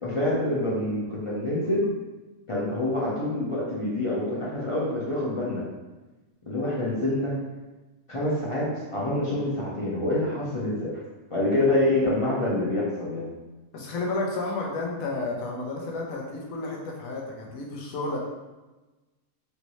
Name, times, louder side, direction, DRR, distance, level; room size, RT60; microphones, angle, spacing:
voice 1, 0.0-1.9 2.5-5.6 6.5-7.3 8.1-11.0 11.3-13.3, left 1 dB, 35° left, -6 dB, 0.5 m, -26 dB
voice 2, 13.7-18.2, left 2 dB, 90° left, -1 dB, 1.1 m, -31 dB
3.2 x 2.6 x 3.0 m, 1.1 s
omnidirectional pair, 1.4 m